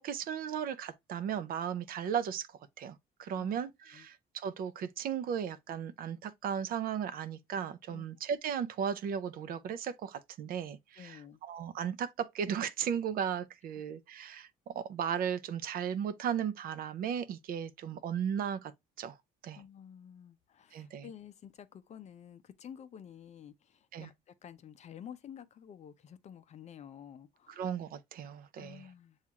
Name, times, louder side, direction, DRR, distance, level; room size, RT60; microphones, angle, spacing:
voice 1, 0.0-2.5 2.8-18.7 19.0-19.2 19.4-19.6 20.7-21.1 23.9-24.1 27.5-28.9, right 8 dB, 60° right, 0.5 m, -36 dB
voice 2, 11.0-11.4 19.5-27.6 28.6-29.2, left 8 dB, 40° left, 0.5 m, -51 dB
7.1 x 2.4 x 2.8 m
cardioid pair, 110°, 17 cm